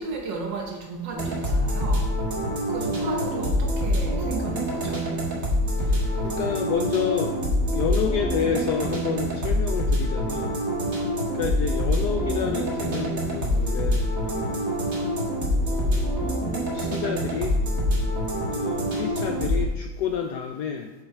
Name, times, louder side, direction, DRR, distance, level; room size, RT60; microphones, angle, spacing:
voice 1, 0.0-2.1 2.7-5.0 5.8-6.3, right 4 dB, 70° right, 1 dB, 1.6 m, -34 dB
sound 1, 1.1-19.6, equal, 45° right, 2.1 m, -25 dB
voice 2, 5.9-7.4 7.7-10.6 11.3-14.7 15.7-16.4 16.7-17.6 18.5-20.9, left 7 dB, 75° left, 6 dB, 0.9 m, -29 dB
7.3 x 6.3 x 4.8 m, 1.0 s
omnidirectional pair, 2.1 m